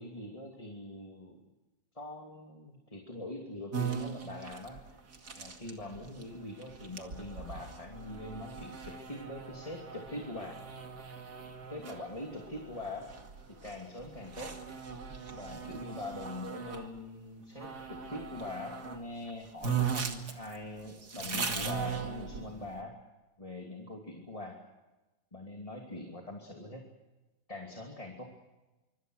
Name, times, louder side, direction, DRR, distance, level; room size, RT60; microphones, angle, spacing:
voice 1, 0.0-1.4 1.9-4.8 5.4-10.6 11.7-13.1 13.6-14.6 15.3-23.0 23.4-24.6 25.3-26.9 27.5-28.3, left 2 dB, 15° left, 1 dB, 2.8 m, -43 dB
sound 1, 3.7-16.9 17.6-19.0 19.3-19.4 19.6-22.7, right 6 dB, 55° right, 2.8 m, -39 dB
26.0 x 25.0 x 6.4 m, 1.1 s
omnidirectional pair, 2.1 m